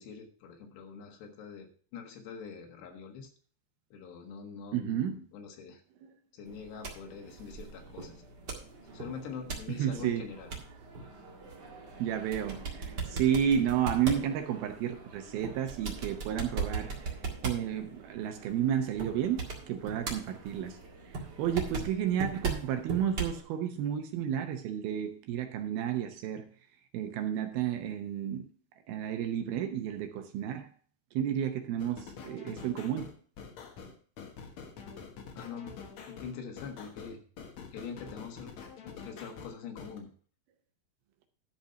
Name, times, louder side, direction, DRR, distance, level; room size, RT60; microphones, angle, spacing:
voice 1, 0.0-3.3 3.9-5.8 6.3-8.1 8.9-10.5 35.3-35.8 36.1-37.2 37.7-38.5 38.8-40.1, left 6 dB, 80° left, 3.7 m, -44 dB
voice 2, 4.7-5.2 9.8-10.2 12.0-16.9 17.4-20.8 21.4-26.5 26.9-28.4 28.9-30.7 31.1-33.1, right 9 dB, 75° right, 2.5 m, -31 dB
sound 1, 6.4-23.4, right 4 dB, 45° right, 1.4 m, -40 dB
sound 2, 31.8-40.0, left 6 dB, 60° left, 2.0 m, -46 dB
12.0 x 5.5 x 5.7 m
omnidirectional pair, 4.9 m